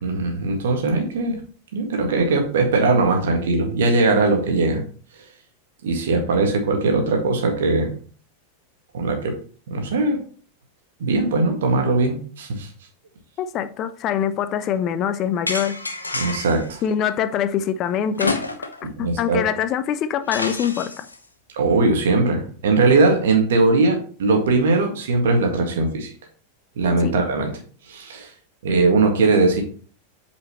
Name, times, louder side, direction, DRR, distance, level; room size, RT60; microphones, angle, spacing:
voice 1, 0.0-1.4 1.7-4.8 5.8-7.9 8.9-9.3 9.7-10.2 11.0-12.7 16.1-16.8 19.0-19.4 21.5-26.1 26.8-27.5 27.9-28.3 28.6-29.6, right 3 dB, 60° right, 1.8 m, -20 dB
voice 2, 13.4-15.8 16.8-21.1 27.0-27.1, left 9 dB, 35° left, 0.5 m, -24 dB
sound 1, 15.5-16.7 18.1-18.9 19.2-19.3 20.3-21.2, left 2 dB, 80° left, 0.8 m, -28 dB
8.0 x 5.1 x 3.0 m
figure-of-eight pair, 90°, 0 cm